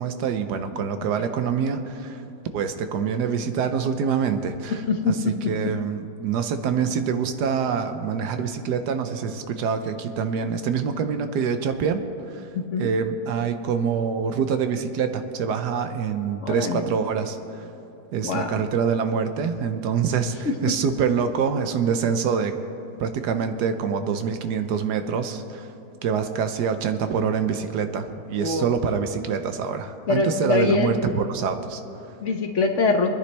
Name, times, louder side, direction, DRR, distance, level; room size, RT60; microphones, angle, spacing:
voice 1, 0.0-2.2 2.5-12.5 12.8-17.7 18.1-22.5 23.0-25.7 26.0-32.1, right 6 dB, 75° right, 8 dB, 1.3 m, -25 dB
voice 2, 16.4-16.8 18.2-18.5 28.4-28.6 30.1-30.9 32.2-33.2, left 4 dB, 50° left, 3 dB, 1.1 m, -23 dB
24.5 x 10.0 x 3.3 m, 2.9 s
omnidirectional pair, 1.8 m